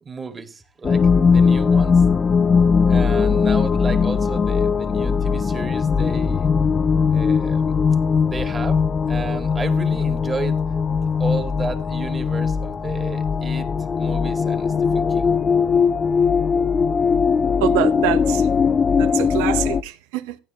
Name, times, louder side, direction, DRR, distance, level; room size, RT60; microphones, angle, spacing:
voice 1, 0.0-2.0 2.9-6.5 7.1-7.7 8.2-8.8 9.1-10.6 10.9-15.3, right 4 dB, 25° right, 2.0 m, -33 dB
sound 1, 0.8-19.8, left 5 dB, 30° left, 0.5 m, -19 dB
voice 2, 17.6-18.5 19.0-20.4, right 13 dB, 75° right, 1.0 m, -25 dB
15.5 x 9.6 x 3.1 m
hypercardioid pair, 90°, 0 cm